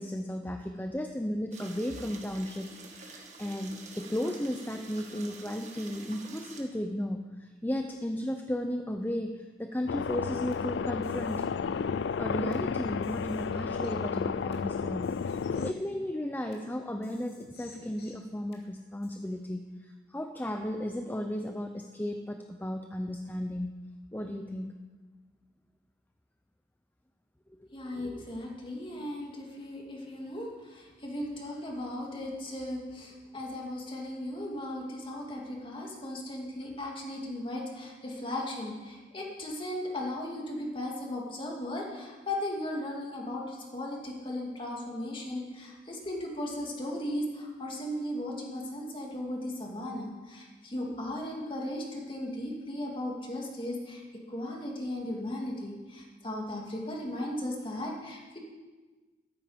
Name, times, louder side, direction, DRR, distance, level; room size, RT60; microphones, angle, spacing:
voice 1, 0.0-11.4 11.8-11.9 12.2-15.1 15.5-23.7 24.1-24.7, left 1 dB, 10° left, 5 dB, 0.6 m, -34 dB
sound 1, 1.5-6.6, right 3 dB, 40° right, 1.9 m, -48 dB
sound 2, 9.8-10.7 11.0-12.7 13.0-14.7 15.0-16.7 17.0-18.7 19.0-19.1, left 1 dB, 60° left, 2.5 m, -52 dB
sound 3, 9.9-15.7, left 6 dB, 80° left, 0.4 m, -32 dB
voice 2, 27.7-54.0 54.3-58.4, left 1 dB, 30° left, -1 dB, 2.6 m, -36 dB
13.5 x 13.0 x 5.2 m, 1.3 s
head